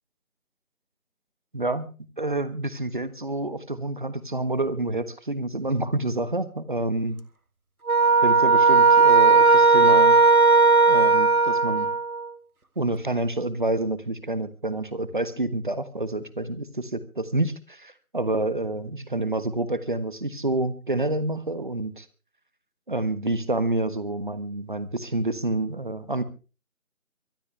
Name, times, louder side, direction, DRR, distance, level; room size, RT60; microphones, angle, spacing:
voice 1, 1.5-7.2 8.2-10.2 10.9-11.9 12.7-22.1 22.9-26.2, right 2 dB, 35° right, 14 dB, 1.4 m, -28 dB
sound 1, 7.9-12.3, right 4 dB, 90° right, 1.9 m, -17 dB
24.0 x 11.5 x 3.3 m, 0.34 s
figure-of-eight pair, 175°, 42 cm